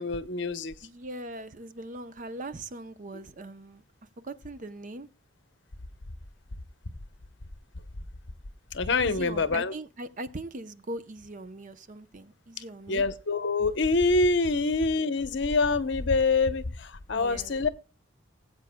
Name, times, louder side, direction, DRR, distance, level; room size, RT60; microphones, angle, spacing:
voice 1, 0.0-0.7 8.7-9.7 12.9-17.7, left 3 dB, 65° left, 0.8 m, -25 dB
voice 2, 0.8-3.8 4.2-5.1 9.0-13.0 17.1-17.5, right 1 dB, 40° right, 0.7 m, -40 dB
19.5 x 8.2 x 2.2 m
head